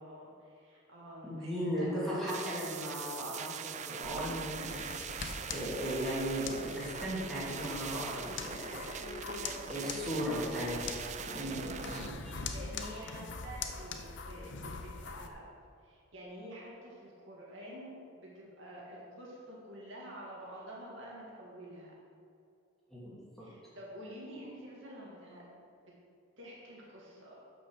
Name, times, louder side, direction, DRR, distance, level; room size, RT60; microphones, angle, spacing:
voice 1, 0.0-2.6 9.0-10.8 11.3-15.4 15.8-21.9 23.4-25.5 25.8-25.9 26.4-27.4, equal, 60° right, -5 dB, 2.4 m, -48 dB
voice 2, 1.2-5.0 5.5-9.0 9.7-10.8 11.2-12.3 22.9-23.5, equal, ahead, -9 dB, 2.6 m, -37 dB
sound 1, 2.3-12.1, right 7 dB, 35° right, 0.4 m, -42 dB
sound 2, 4.0-15.3, left 4 dB, 55° left, 0.7 m, -43 dB
10.5 x 5.7 x 6.6 m, 2.6 s
head